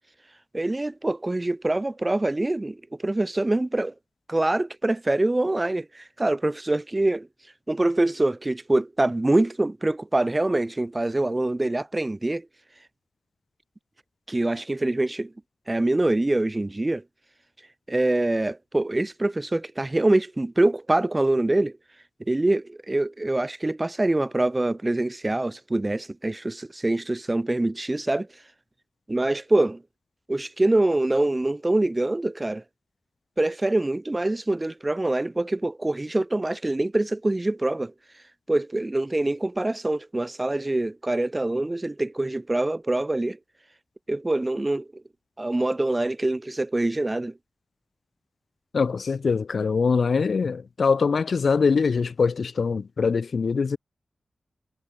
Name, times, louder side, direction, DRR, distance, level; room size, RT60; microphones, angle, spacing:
voice 1, 0.5-3.9 4.3-7.3 7.7-12.5 14.3-15.3 15.7-17.0 17.9-21.7 22.3-28.3 29.1-29.8 30.3-32.6 33.4-37.9 38.5-43.4 44.1-45.0 45.4-47.4, right 2 dB, 20° right, 1.9 m, -24 dB
voice 2, 48.7-53.8, left 5 dB, 60° left, 0.8 m, -23 dB
wide cardioid pair, 130°, 0 cm